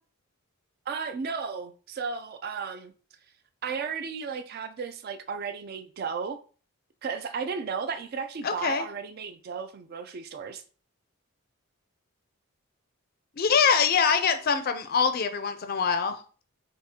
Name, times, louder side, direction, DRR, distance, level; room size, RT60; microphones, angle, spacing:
voice 1, 0.9-2.9 3.6-6.4 7.0-10.6, right 5 dB, 45° right, 0.3 m, -34 dB
voice 2, 8.4-8.8 13.4-16.2, left 6 dB, 40° left, 0.4 m, -24 dB
4.9 x 2.4 x 2.7 m
head